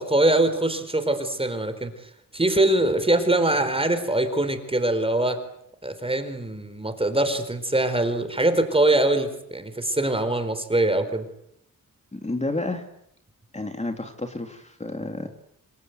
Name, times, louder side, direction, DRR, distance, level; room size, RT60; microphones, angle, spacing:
voice 1, 0.0-1.9 2.3-5.4 5.8-11.2, right 1 dB, 15° right, 9 dB, 4.4 m, -23 dB
voice 2, 12.1-12.8 13.5-15.3, left 2 dB, 20° left, 4 dB, 2.7 m, -30 dB
26.5 x 26.5 x 8.2 m, 0.76 s
wide cardioid pair, 105°, 33 cm